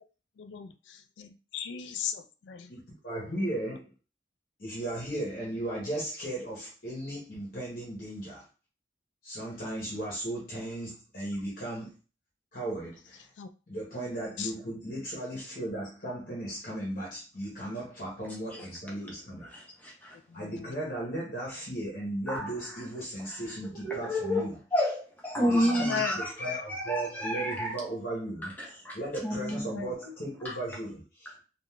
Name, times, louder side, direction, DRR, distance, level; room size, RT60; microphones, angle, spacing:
voice 1, 0.4-0.7 1.2-2.7 13.4-13.5 14.4-14.5 20.3-20.8 25.6-26.2 29.5-29.9, left 8 dB, 85° left, 8 dB, 0.3 m, -37 dB
voice 2, 2.7-3.9 4.6-8.4 9.2-11.9 12.5-13.2 13.7-19.5 20.3-24.6 25.4-31.4, right 1 dB, 50° left, -5 dB, 1.0 m, -36 dB
voice 3, 19.5-20.1 22.3-22.5 23.8-27.8 28.4-29.0 29.2-29.7 30.4-30.5, equal, 10° left, -3 dB, 0.8 m, -30 dB
3.5 x 2.4 x 2.3 m, 0.34 s
head